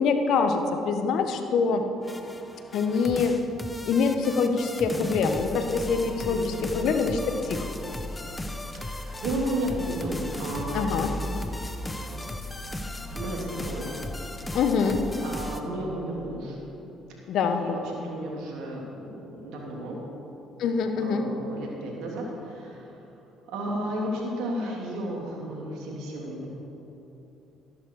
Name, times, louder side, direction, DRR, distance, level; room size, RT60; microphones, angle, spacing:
voice 1, 0.0-1.8 2.7-3.4 3.9-7.7 10.7-11.1 14.5-15.0 17.3-17.8 20.6-21.2, left 5 dB, 70° left, 7 dB, 1.1 m, -25 dB
sound 1, 2.0-15.6, left 1 dB, 20° left, 1.1 m, -36 dB
voice 2, 6.2-6.9 8.8-11.6 13.0-13.9 15.2-16.6 17.4-20.0 20.9-22.9 23.5-26.5, right 1 dB, 75° right, -2 dB, 3.0 m, -33 dB
13.5 x 12.0 x 4.8 m, 3.0 s
hypercardioid pair, 60°, 0 cm